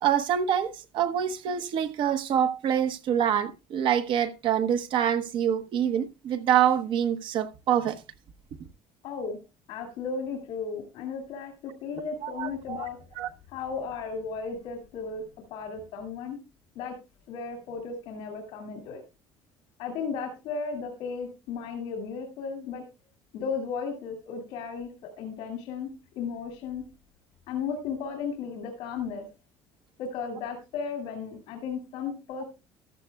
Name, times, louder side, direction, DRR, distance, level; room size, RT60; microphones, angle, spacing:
voice 1, 0.0-8.0 12.2-12.9 13.2-13.3, right 9 dB, 60° right, 0.9 m, -26 dB
voice 2, 9.0-9.4 9.7-13.0 13.5-15.2 15.5-16.4 16.8-16.9 17.3-19.0 19.8-22.8 23.3-24.9 25.2-25.9 26.2-26.8 27.5-29.2 30.0-32.4, left 5 dB, 85° left, 2.3 m, -35 dB
14.5 x 12.0 x 2.3 m
cardioid pair, 125°, 10 cm